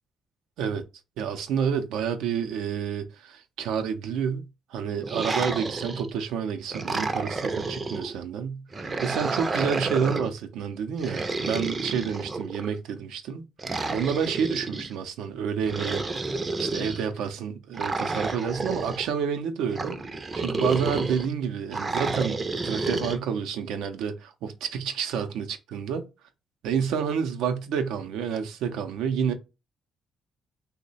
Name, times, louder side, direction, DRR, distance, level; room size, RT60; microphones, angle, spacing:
voice 1, 1.2-4.5 4.7-16.0 16.6-20.0 20.3-22.4 22.6-26.1 26.6-29.3, right 7 dB, 90° right, 0.5 m, -29 dB
sound 1, 5.0-6.2 6.7-8.1 8.7-10.3 11.0-12.7 13.6-14.9 15.6-17.0 17.7-19.1 19.7-21.3 21.7-23.2, right 3 dB, 30° right, 0.5 m, -30 dB
3.0 x 2.1 x 3.9 m
cardioid pair, 90°, 0 cm